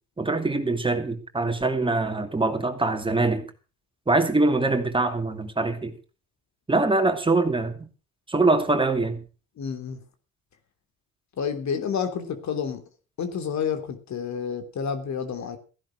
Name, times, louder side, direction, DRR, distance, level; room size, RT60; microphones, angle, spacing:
voice 1, 0.2-3.5 4.1-5.9 6.7-7.9 8.3-9.2, right 2 dB, 15° right, 2.6 m, -23 dB
voice 2, 9.6-10.0 11.4-12.8 13.2-15.6, left 7 dB, 65° left, 3.2 m, -29 dB
15.5 x 10.5 x 6.3 m
cardioid pair, 90°, 30 cm